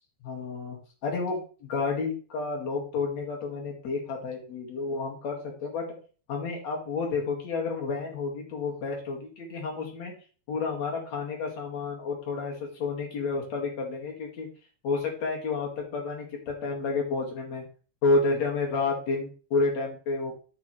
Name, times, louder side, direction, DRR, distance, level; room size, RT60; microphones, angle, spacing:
voice 1, 0.2-5.9 6.3-10.1 10.5-14.5 14.8-17.7 18.0-20.3, left 3 dB, 65° left, 0 dB, 3.4 m, -30 dB
12.0 x 6.1 x 3.3 m, 0.38 s
omnidirectional pair, 3.4 m